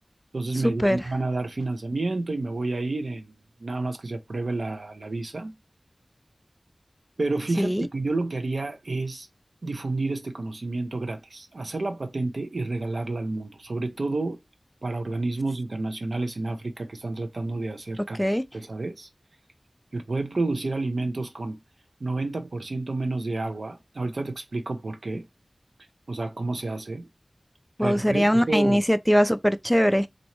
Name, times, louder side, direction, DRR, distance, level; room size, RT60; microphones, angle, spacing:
voice 1, 0.3-3.3 3.6-5.5 7.2-9.3 9.6-14.4 14.8-19.1 19.9-21.6 22.0-25.2 26.1-27.1 27.8-28.8, right 2 dB, 85° right, 0.8 m, -30 dB
voice 2, 27.8-30.1, equal, ahead, 0.4 m, -21 dB
4.1 x 2.6 x 3.0 m
wide cardioid pair, 55°, 0 cm